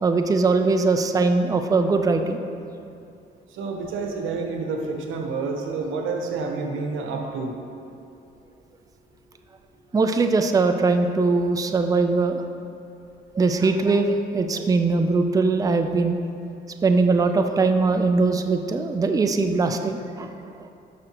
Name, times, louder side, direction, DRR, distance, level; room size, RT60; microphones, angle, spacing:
voice 1, 0.0-2.4 9.9-12.4 13.3-16.2 16.8-20.3 20.6-20.7, right 3 dB, 20° right, 6 dB, 0.5 m, -21 dB
voice 2, 3.6-7.6, right 4 dB, 90° right, 2 dB, 1.0 m, -29 dB
11.0 x 6.3 x 3.0 m, 2.6 s
cardioid pair, 90°, 20 cm